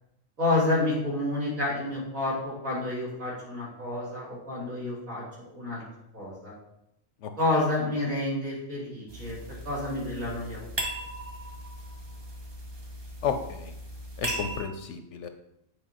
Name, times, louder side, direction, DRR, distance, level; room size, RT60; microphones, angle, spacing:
voice 1, 0.4-5.8 6.1-6.5 7.4-9.4 9.6-10.6, left 2 dB, 75° right, -7 dB, 3.3 m, -29 dB
sound 1, 9.1-14.6, right 1 dB, 25° right, 0.7 m, -38 dB
voice 2, 13.2-13.7 14.2-15.3, left 7 dB, 70° left, 7 dB, 0.8 m, -32 dB
8.7 x 4.9 x 2.9 m, 0.82 s
omnidirectional pair, 1.4 m